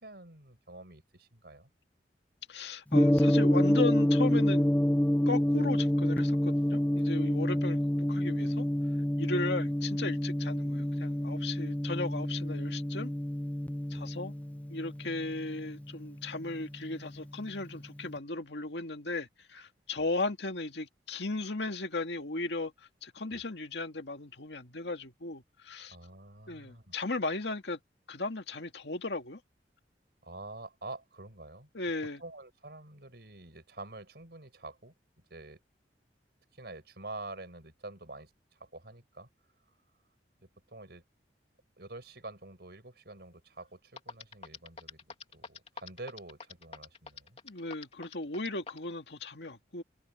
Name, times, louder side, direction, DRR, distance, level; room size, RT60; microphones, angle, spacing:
voice 1, 0.0-1.7 13.9-14.1 23.3-23.4 25.9-26.9 30.2-31.7 32.2-34.9 35.3-35.6 36.6-39.3 40.4-41.0 41.8-47.4, right 2 dB, 65° right, 5.1 m, -47 dB
voice 2, 2.5-4.7 5.3-8.7 9.2-13.1 13.9-14.3 14.7-26.0 26.5-27.8 28.1-29.4 31.7-32.2 47.4-49.8, left 3 dB, 75° left, 2.1 m, -36 dB
Gong, 2.9-17.1, equal, 10° left, 0.4 m, -28 dB
sound 1, 43.6-43.7 44.0-48.9, left 5 dB, 35° left, 3.0 m, -45 dB
head